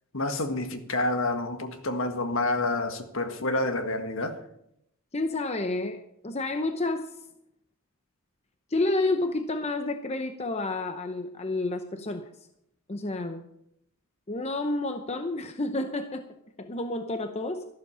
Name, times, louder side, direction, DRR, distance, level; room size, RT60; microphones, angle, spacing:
voice 1, 0.1-4.4, left 2 dB, 60° left, 7 dB, 1.7 m, -28 dB
voice 2, 5.1-7.1 8.7-12.3 12.9-13.5 14.3-16.2 16.6-17.7, left 2 dB, 30° left, 7 dB, 0.8 m, -30 dB
13.5 x 12.0 x 5.7 m, 0.75 s
head